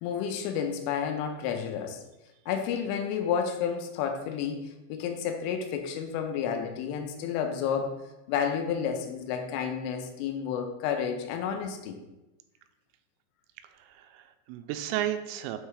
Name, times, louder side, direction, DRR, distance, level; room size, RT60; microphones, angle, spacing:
voice 1, 0.0-2.0 2.5-8.0 8.3-12.0, left 7 dB, 85° left, 5 dB, 3.0 m, -31 dB
voice 2, 13.6-15.6, right 12 dB, 85° right, 8 dB, 3.2 m, -34 dB
8.0 x 3.2 x 4.7 m, 1.0 s
omnidirectional pair, 5.8 m